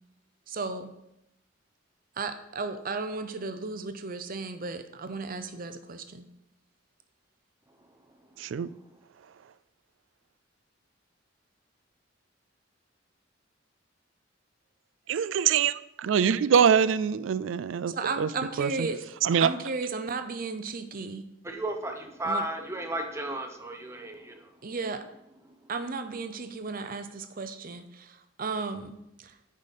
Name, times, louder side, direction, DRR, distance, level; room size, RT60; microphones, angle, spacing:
voice 1, 0.5-0.9 2.2-6.3 17.9-19.0 19.4-21.3 22.2-22.4 24.6-25.0 25.7-29.3, right 4 dB, 50° right, 9 dB, 0.7 m, -34 dB
voice 2, 8.4-8.7 15.1-18.3 18.6-18.9 19.2-19.5, right 7 dB, 90° right, 17 dB, 0.4 m, -24 dB
voice 3, 21.4-24.5 25.4-25.6, right 1 dB, 15° right, 4 dB, 0.9 m, -34 dB
9.7 x 5.2 x 4.2 m, 0.85 s
head